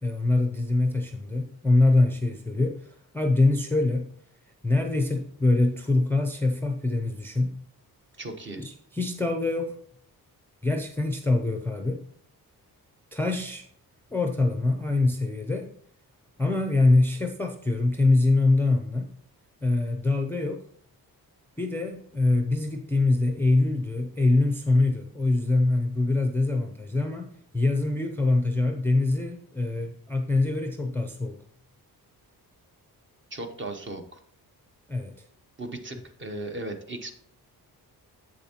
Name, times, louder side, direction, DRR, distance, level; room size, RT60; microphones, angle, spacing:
voice 1, 0.0-4.1 4.6-7.6 8.6-9.8 10.6-12.0 13.1-13.6 14.1-15.7 16.4-19.1 19.6-20.6 21.6-31.4 34.9-35.1, left 2 dB, 5° left, 4 dB, 0.4 m, -24 dB
voice 2, 8.2-8.6 33.3-34.2 35.6-37.1, right 2 dB, 30° right, 6 dB, 0.9 m, -36 dB
8.0 x 7.0 x 2.9 m, 0.63 s
wide cardioid pair, 165°, 37 cm